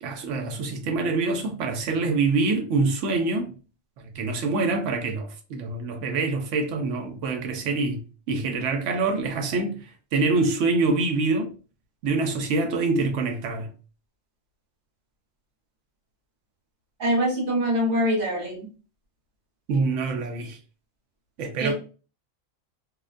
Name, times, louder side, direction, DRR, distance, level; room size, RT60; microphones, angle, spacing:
voice 1, 0.0-3.5 4.0-8.0 8.3-9.8 10.1-11.5 12.0-13.7 19.7-20.6 21.4-21.7, right 3 dB, 75° right, 0.9 m, -25 dB
voice 2, 17.0-18.7 21.6-21.7, equal, 45° right, 1.1 m, -24 dB
2.4 x 2.1 x 2.4 m
omnidirectional pair, 1.3 m